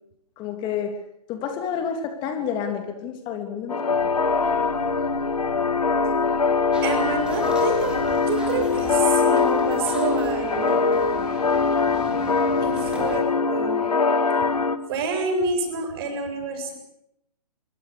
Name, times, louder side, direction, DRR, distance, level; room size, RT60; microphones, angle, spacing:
voice 1, 0.4-1.0 1.3-4.0, left 7 dB, 20° left, 6 dB, 3.0 m, -29 dB
sound 1, 3.7-14.8, left 4 dB, 70° left, 2.2 m, -22 dB
sound 2, 3.9-9.9, right 1 dB, 80° right, 7.8 m, -42 dB
sound 3, 6.7-13.2, equal, 5° right, 5.4 m, -40 dB
voice 2, 6.8-7.9 8.3-10.8 12.6-13.9 14.9-16.7, right 4 dB, 40° right, 6 dB, 7.4 m, -28 dB
26.0 x 24.5 x 6.9 m, 0.80 s
figure-of-eight pair, 130°, 20 cm